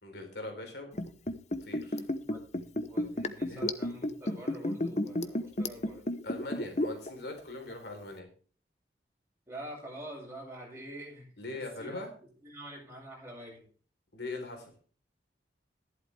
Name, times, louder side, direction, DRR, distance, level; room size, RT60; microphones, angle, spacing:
voice 1, 0.0-0.9 1.6-2.0 3.5-3.6 6.2-8.3 11.4-12.1 14.1-14.7, left 2 dB, 70° left, 3 dB, 3.9 m, -41 dB
Liquid, 0.9-7.1 7.4-7.5, left 1 dB, 40° left, 0.9 m, -32 dB
voice 2, 2.3-6.1 9.5-12.0 12.4-13.6, right 1 dB, 15° right, -4 dB, 7.8 m, -46 dB
14.5 x 11.5 x 3.4 m, 0.41 s
head